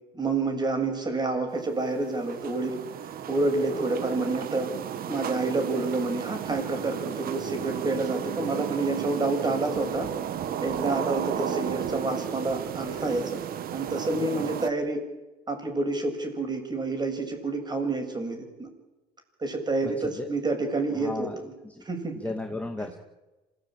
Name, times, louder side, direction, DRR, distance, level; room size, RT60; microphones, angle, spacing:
voice 1, 0.1-2.8 3.3-4.7 5.1-10.1 10.6-13.4 13.7-15.0 15.5-18.7 19.4-21.5 21.9-22.2 22.8-22.9, right 3 dB, 25° right, 5 dB, 7.3 m, -28 dB
sound 1, 1.5-14.7, right 9 dB, 60° right, 1.8 m, -34 dB
voice 2, 19.8-20.3 20.9-21.3 21.6-21.8 22.2-23.0, left 2 dB, 10° left, 3 dB, 2.2 m, -35 dB
26.5 x 17.5 x 9.1 m, 1.1 s
cardioid pair, 110°, 17 cm